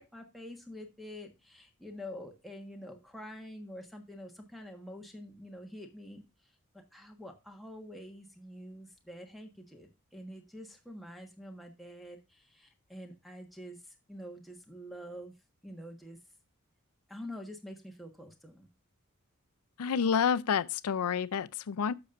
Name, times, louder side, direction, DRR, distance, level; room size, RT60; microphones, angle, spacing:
voice 1, 0.0-6.2 6.7-15.3 15.6-16.2 17.1-18.7, equal, ahead, 1.4 m, -46 dB
voice 2, 19.8-21.9, left 7 dB, 80° left, 0.5 m, -29 dB
11.5 x 6.9 x 2.5 m
head